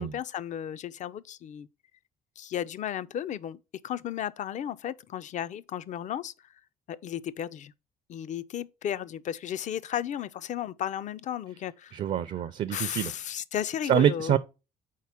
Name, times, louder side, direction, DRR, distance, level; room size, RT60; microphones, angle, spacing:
voice 1, 0.0-1.7 2.4-3.6 3.8-6.3 6.9-7.7 8.1-12.0 12.7-14.4, left 10 dB, 45° left, 0.4 m, -34 dB
voice 2, 11.9-13.1 13.8-14.4, right 10 dB, 45° right, 0.4 m, -25 dB
4.7 x 4.1 x 5.6 m
cardioid pair, 110°, 17 cm